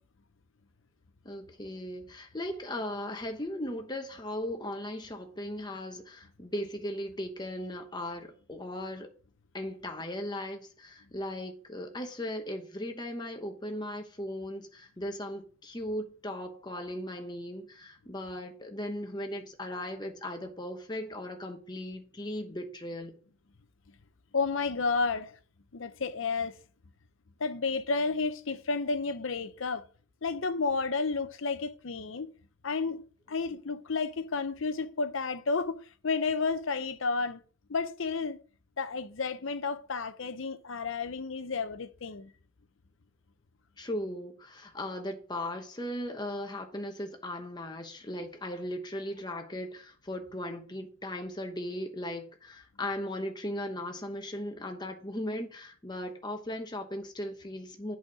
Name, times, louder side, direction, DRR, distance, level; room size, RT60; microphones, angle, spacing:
voice 1, 1.2-9.1 9.5-23.1 43.8-58.0, left 1 dB, 20° left, 1.0 m, -37 dB
voice 2, 24.3-25.3 25.7-26.5 27.4-29.8 30.2-32.3 32.6-33.0 33.3-35.8 36.0-37.4 37.7-38.4 38.8-42.3, left 4 dB, 70° left, 0.7 m, -31 dB
8.1 x 4.3 x 4.8 m
head